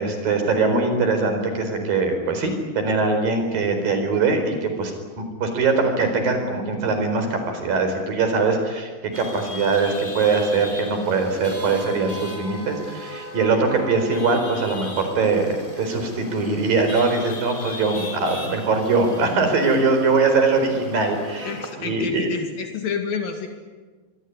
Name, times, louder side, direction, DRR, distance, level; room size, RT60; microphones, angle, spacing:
voice 1, 0.0-4.9 5.2-8.9 9.2-22.3, right 4 dB, 70° right, 6 dB, 6.1 m, -22 dB
Chatter / Vehicle horn car horn honking / Traffic noise roadway noise, 9.1-21.7, left 1 dB, 10° left, 3.2 m, -37 dB
voice 2, 21.4-23.5, left 6 dB, 75° left, 5 dB, 3.8 m, -29 dB
26.0 x 22.0 x 9.7 m, 1.4 s
omnidirectional pair, 4.2 m